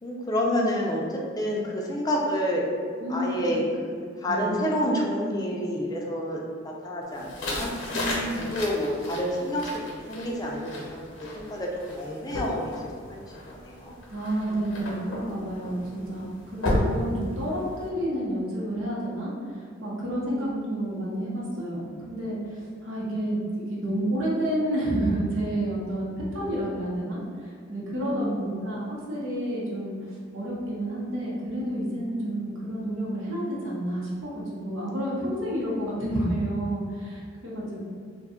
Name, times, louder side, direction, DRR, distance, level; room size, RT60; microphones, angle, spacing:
voice 1, 0.0-2.6 3.1-3.6 3.9-7.7 8.2-12.7 13.1-13.9 20.3-21.0 28.0-28.6 37.6-37.8, equal, 20° left, -2 dB, 0.4 m, -29 dB
voice 2, 3.0-3.6 4.3-4.5 7.9-8.4 14.1-37.8, right 1 dB, 75° right, -6 dB, 0.8 m, -30 dB
sound 1, 7.2-17.9, left 1 dB, 85° left, 0.7 m, -34 dB
2.6 x 2.2 x 3.6 m, 2.1 s
head